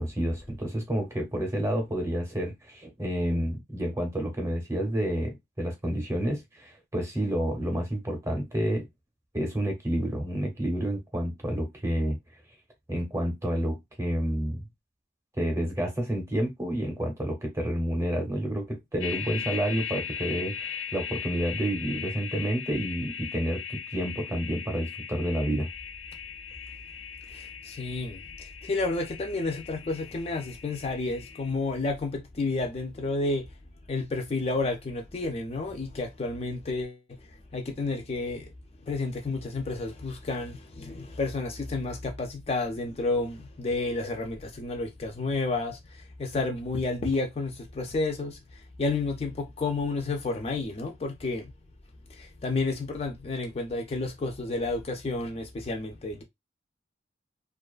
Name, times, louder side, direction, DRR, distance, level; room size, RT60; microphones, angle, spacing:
voice 1, 0.0-8.9 9.3-12.2 12.9-14.6 15.4-25.7, right 1 dB, 15° right, 0.7 m, -29 dB
sound 1, 19.0-31.5, left 8 dB, 85° left, 0.6 m, -38 dB
voice 2, 27.3-28.2 28.6-33.4 33.9-37.0 37.5-38.4 38.9-45.8 46.2-48.4 48.8-51.5 52.4-56.2, left 3 dB, 30° left, 0.4 m, -30 dB
2.4 x 2.2 x 2.3 m
head